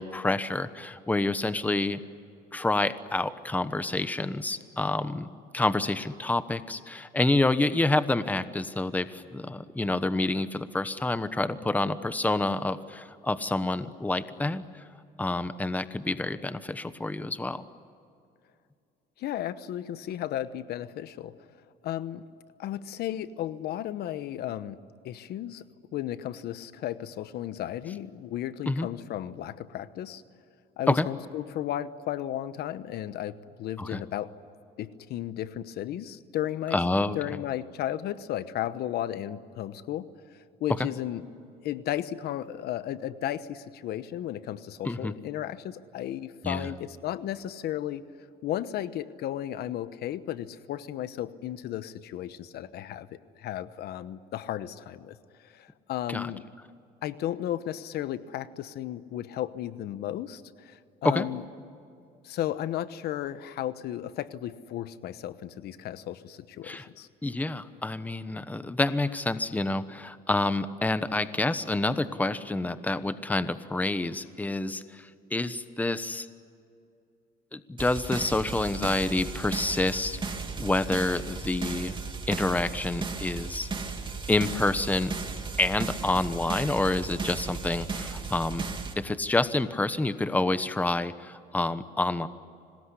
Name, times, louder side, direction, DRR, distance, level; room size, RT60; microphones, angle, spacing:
voice 1, 0.0-2.0 2.5-5.3 5.5-14.8 15.2-17.7 28.7-28.9 30.9-31.1 33.8-34.0 36.7-37.2 44.8-45.1 46.4-46.7 56.1-56.3 61.0-61.3 66.6-66.9 67.2-76.3 77.5-82.0 82.3-83.7 84.3-85.1 85.6-88.7 89.0-92.3, left 2 dB, 10° left, 12 dB, 1.1 m, -28 dB
voice 2, 19.2-21.3 21.8-22.2 22.6-24.8 25.0-25.7 25.9-30.2 30.8-34.3 34.8-36.8 37.1-41.2 41.6-48.0 48.4-55.2 55.4-56.4 57.0-61.4 62.2-67.1, left 12 dB, 70° left, 14 dB, 1.1 m, -34 dB
sound 1, 77.8-88.9, right 4 dB, 30° right, 2.8 m, -35 dB
26.0 x 19.5 x 9.9 m, 2.5 s
cardioid pair, 110°, 17 cm